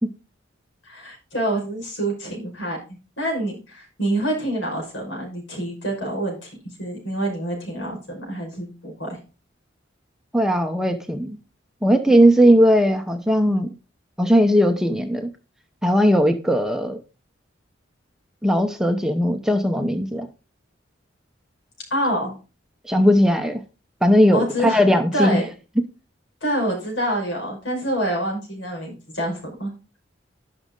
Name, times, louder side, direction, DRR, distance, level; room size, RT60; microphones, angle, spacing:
voice 1, 0.8-6.5 6.8-9.2 21.9-22.3 24.3-24.8 25.1-25.4 26.4-29.7, right 1 dB, 75° left, 0 dB, 5.7 m, -26 dB
voice 2, 10.3-11.4 11.8-13.7 14.2-15.3 15.8-17.0 18.4-20.3 22.8-23.6 24.0-25.4, equal, 5° right, 5 dB, 0.8 m, -18 dB
11.5 x 6.4 x 3.9 m, 0.33 s
head